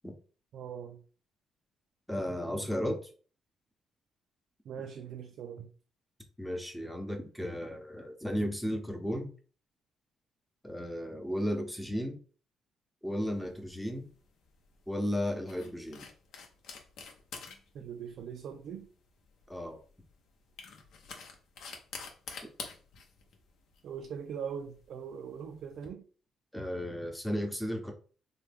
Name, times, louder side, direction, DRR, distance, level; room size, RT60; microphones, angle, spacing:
voice 1, 0.5-1.0 4.6-5.7 17.7-18.9 23.8-26.1, right 7 dB, 70° right, 0.3 m, -41 dB
voice 2, 2.1-3.0 6.4-9.3 10.6-12.2 13.0-14.0 14.9-16.0 19.5-19.8 26.5-27.9, equal, 5° left, 0.7 m, -34 dB
sound 1, 13.3-25.9, left 5 dB, 75° left, 0.7 m, -49 dB
3.1 x 2.2 x 3.4 m
cardioid pair, 90°, 0 cm